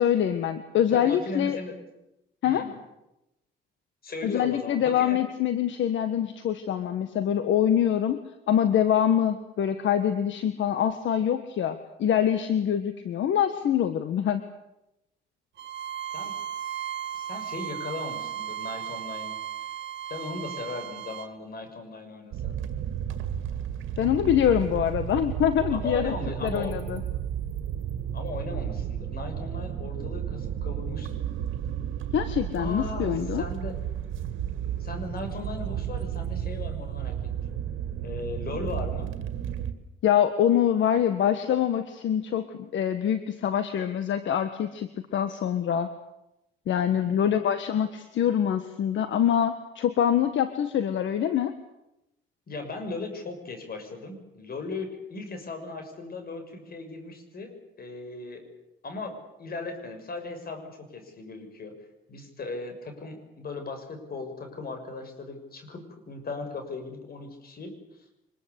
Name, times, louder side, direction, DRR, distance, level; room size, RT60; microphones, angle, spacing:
voice 1, 0.0-1.6 2.4-2.6 4.2-8.2 8.5-14.4 24.0-26.1 26.4-27.0 32.1-33.4 40.0-45.9 46.7-51.5, left 9 dB, 70° left, 10 dB, 1.6 m, -25 dB
voice 2, 0.9-1.8 2.4-2.8 4.0-5.2 16.1-16.4 17.1-19.4 20.0-22.6 25.7-26.8 28.1-31.1 32.6-33.8 34.8-37.6 38.0-39.1 46.9-47.3 52.5-58.4 58.8-61.7 62.1-67.7, left 3 dB, 50° left, 7 dB, 6.5 m, -37 dB
Bowed string instrument, 15.6-21.3, right 10 dB, 65° right, 1.3 m, -35 dB
sound 1, 22.3-39.7, right 10 dB, 85° right, 2.0 m, -33 dB
24.5 x 21.5 x 8.3 m, 0.90 s
cardioid pair, 90°, 20 cm